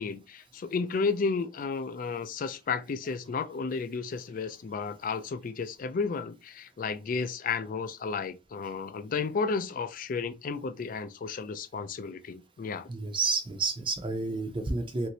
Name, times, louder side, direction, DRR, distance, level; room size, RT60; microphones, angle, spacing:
voice 1, 0.0-12.9, left 5 dB, 50° left, 0.4 m, -32 dB
voice 2, 12.9-15.1, right 3 dB, 30° right, 0.6 m, -30 dB
3.0 x 2.7 x 2.8 m
head